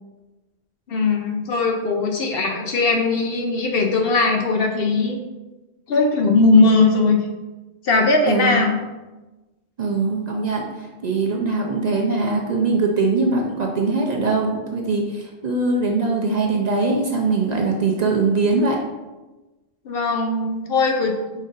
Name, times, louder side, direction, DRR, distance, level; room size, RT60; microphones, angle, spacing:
voice 1, 0.9-5.2 5.9-7.2 7.8-8.8 19.8-21.1, left 3 dB, 60° left, 3 dB, 0.7 m, -19 dB
voice 2, 8.3-8.6 9.8-18.8, right 3 dB, 55° right, 0 dB, 0.5 m, -21 dB
5.1 x 2.6 x 3.8 m, 1.1 s
omnidirectional pair, 1.3 m